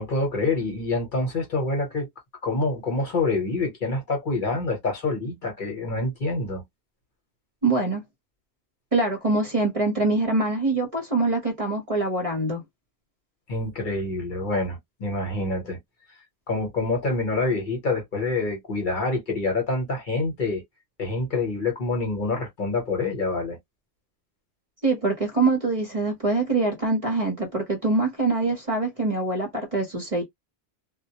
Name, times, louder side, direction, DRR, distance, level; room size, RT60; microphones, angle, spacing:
voice 1, 0.0-2.1 2.4-6.6 13.5-15.8 16.5-20.6 21.0-23.6, left 3 dB, 50° left, 1.0 m, -26 dB
voice 2, 7.6-8.0 8.9-12.6 24.8-30.2, right 3 dB, 35° right, 0.8 m, -24 dB
2.2 x 2.0 x 2.8 m
omnidirectional pair, 1.1 m